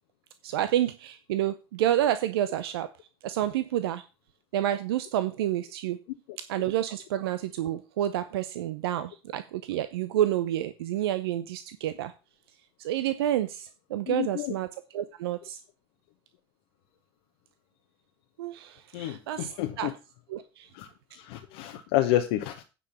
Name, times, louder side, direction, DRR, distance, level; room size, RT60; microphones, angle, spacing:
voice 1, 0.4-2.9 3.2-4.0 4.5-6.0 6.5-12.1 12.8-15.6 18.4-19.9 20.3-20.7, right 12 dB, 75° right, 12 dB, 0.6 m, -29 dB
voice 2, 14.1-14.5 18.9-19.9 20.7-20.9 21.1-22.6, left 14 dB, 65° left, 4 dB, 1.0 m, -29 dB
9.3 x 5.4 x 5.6 m, 0.30 s
hypercardioid pair, 70°, 13 cm